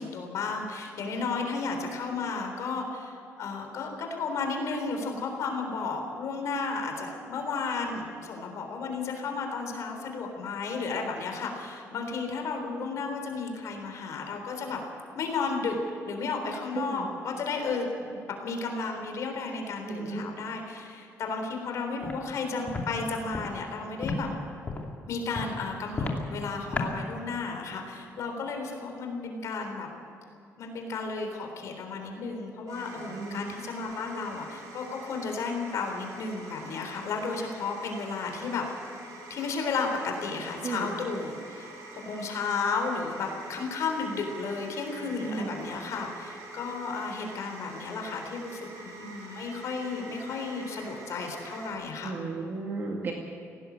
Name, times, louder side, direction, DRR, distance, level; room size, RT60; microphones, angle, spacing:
voice 1, 0.0-14.8 15.2-15.8 16.1-24.3 25.1-29.9 30.6-38.7 39.3-41.7 42.1-48.7 49.0-52.1, left 4 dB, 60° left, 3 dB, 3.7 m, -33 dB
voice 2, 1.1-1.5 16.8-17.1 19.9-20.2 32.9-33.4 40.6-40.9 45.3-45.5 52.0-53.1, right 4 dB, 40° right, 0 dB, 2.1 m, -34 dB
Walk footsteps, 22.0-22.2 22.7-22.9 23.3-23.5 24.0-24.2 24.6-24.9 25.3-25.5 25.9-26.2 26.7-26.9, left 4 dB, 25° left, 2.6 m, -31 dB
sound 1, 32.7-51.7, right 2 dB, 90° right, 7.0 m, -46 dB
18.5 x 17.5 x 8.2 m, 2.7 s
cardioid pair, 155°, 6 cm